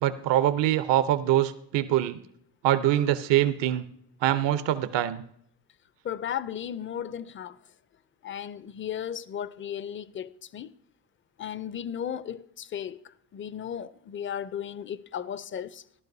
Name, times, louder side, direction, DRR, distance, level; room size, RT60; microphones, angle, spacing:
voice 1, 0.0-2.2 2.6-3.8 4.2-5.2, right 12 dB, 65° right, 0.8 m, -24 dB
voice 2, 6.0-7.6 8.2-10.7 11.4-15.8, left 9 dB, 25° left, 0.5 m, -35 dB
14.5 x 11.5 x 2.7 m
supercardioid pair, 75°, 47 cm